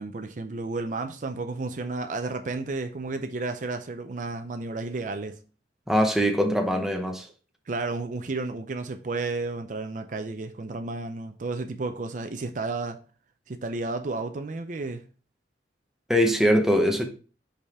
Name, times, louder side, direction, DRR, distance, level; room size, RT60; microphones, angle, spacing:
voice 1, 0.0-5.4 7.1-7.2 7.7-13.0 13.5-15.0, right 3 dB, 45° right, 0.5 m, -32 dB
voice 2, 5.9-7.3 16.1-17.0, equal, ahead, 0.7 m, -22 dB
5.4 x 4.9 x 3.5 m
head